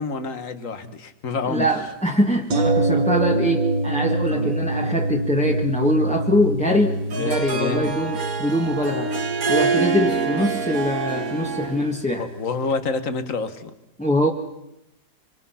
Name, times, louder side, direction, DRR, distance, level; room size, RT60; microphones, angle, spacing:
voice 1, 0.0-1.7 4.3-4.6 7.1-7.9 12.2-13.7, left 4 dB, 50° left, 10 dB, 1.8 m, -28 dB
voice 2, 1.5-9.1 9.5-12.3 14.0-14.3, equal, 5° left, -1 dB, 1.5 m, -23 dB
sound 1, 2.5-12.4 12.7-12.8, right 2 dB, 90° right, 2.0 m, -26 dB
Harp, 6.7-12.0, right 5 dB, 60° right, 1.9 m, -26 dB
26.0 x 25.0 x 5.8 m, 0.88 s
omnidirectional pair, 1.8 m